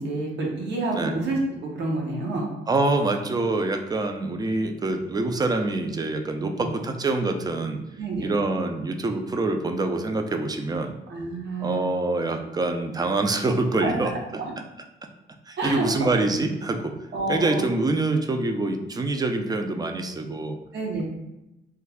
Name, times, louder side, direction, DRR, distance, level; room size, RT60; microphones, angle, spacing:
voice 1, 0.0-1.4 1.7-2.5 6.5-6.7 8.0-8.3 11.1-11.9 13.8-14.5 15.6-16.1 17.1-17.6 20.7-21.0, right 2 dB, 65° right, -2 dB, 1.0 m, -28 dB
voice 2, 2.7-7.8 8.2-10.9 11.6-14.1 15.5-16.9 17.3-20.6, right 2 dB, 20° right, 6 dB, 0.4 m, -25 dB
3.3 x 2.3 x 3.4 m, 0.93 s
cardioid pair, 90°, 20 cm